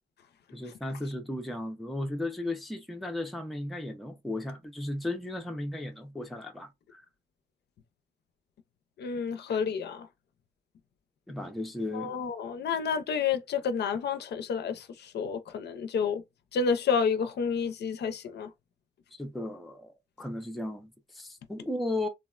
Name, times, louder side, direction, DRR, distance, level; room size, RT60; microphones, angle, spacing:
voice 1, 0.5-7.0 11.3-12.1 19.1-22.1, left 1 dB, ahead, 0.4 m, -35 dB
voice 2, 9.0-10.1 11.9-16.2 16.5-18.5, left 6 dB, 60° left, 0.5 m, -30 dB
3.6 x 2.1 x 2.3 m
wide cardioid pair, 165°, 20 cm